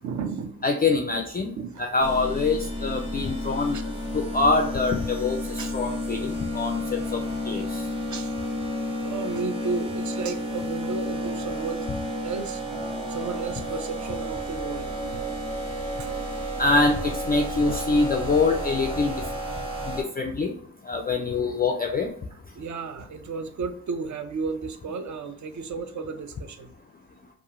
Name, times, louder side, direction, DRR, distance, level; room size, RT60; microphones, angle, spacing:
voice 1, 0.0-0.7 1.6-1.8 3.7-3.8 5.6-5.7 8.1-8.3 9.0-11.9 12.2-12.6 13.1-15.3 16.0-16.1 17.7-17.8 22.6-26.7, right 4 dB, 45° right, 9 dB, 0.5 m, -33 dB
voice 2, 0.6-1.5 1.8-3.8 4.1-7.2 7.5-7.8 16.6-19.1 19.9-20.6 20.9-22.1, left 3 dB, 25° left, 4 dB, 0.3 m, -24 dB
sound 1, 2.0-20.0, equal, 10° right, 0.9 m, -31 dB
2.8 x 2.3 x 2.5 m, 0.64 s
supercardioid pair, 45°, 42 cm